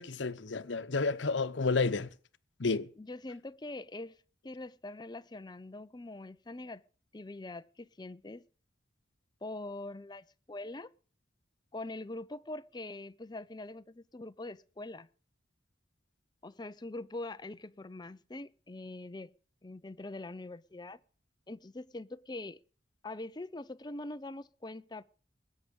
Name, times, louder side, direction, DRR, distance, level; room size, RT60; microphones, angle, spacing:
voice 1, 0.0-2.1 2.6-2.9, left 4 dB, 85° left, 0.9 m, -31 dB
voice 2, 3.0-4.2 4.4-6.8 7.1-8.4 9.4-10.9 11.7-15.1 16.4-19.3 19.6-21.0 21.5-22.6 23.0-25.0, left 2 dB, 25° left, 0.6 m, -43 dB
20.5 x 9.3 x 5.3 m
head